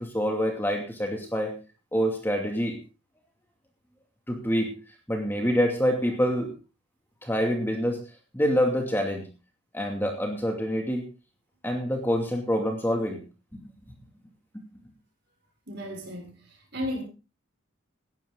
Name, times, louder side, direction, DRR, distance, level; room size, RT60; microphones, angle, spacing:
voice 1, 0.0-1.5 1.9-2.8 4.3-4.7 5.1-6.5 7.2-8.0 8.3-9.3 9.7-11.0 11.6-13.2, equal, 10° left, 2 dB, 2.5 m, -26 dB
voice 2, 15.7-17.0, left 1 dB, 50° right, 1 dB, 6.7 m, -34 dB
18.5 x 12.0 x 3.9 m, 0.34 s
head